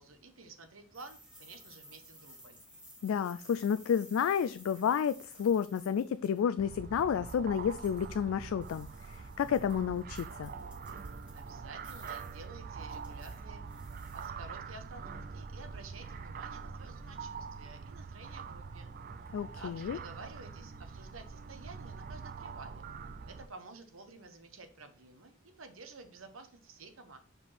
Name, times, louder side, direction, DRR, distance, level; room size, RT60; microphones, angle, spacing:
voice 1, 0.0-2.6 11.3-13.6 14.1-18.9 19.5-22.8 23.3-27.2, right 3 dB, 85° right, 7 dB, 1.1 m, -51 dB
sound 1, 0.9-6.4 7.7-8.2 8.6-11.6 11.8-12.4 12.8-14.3, equal, 5° right, 2.4 m, -56 dB
voice 2, 3.0-10.5 19.3-20.0, left 7 dB, 85° left, 13 dB, 0.3 m, -31 dB
sound 2, 6.6-23.5, right 5 dB, 45° right, 0.4 m, -44 dB
5.2 x 4.9 x 4.2 m, 0.43 s
head